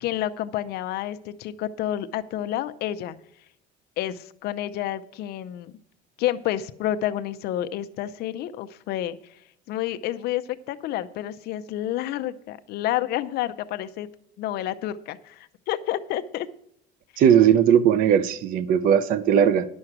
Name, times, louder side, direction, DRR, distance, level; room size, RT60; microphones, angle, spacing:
voice 1, 0.0-3.1 4.0-5.7 6.2-9.2 9.7-10.4 10.7-14.1 14.4-16.5, left 12 dB, 55° left, 11 dB, 0.6 m, -29 dB
voice 2, 17.2-19.7, right 8 dB, 45° right, 14 dB, 0.5 m, -18 dB
11.0 x 6.3 x 5.9 m, 0.73 s
cardioid pair, 160°, 20 cm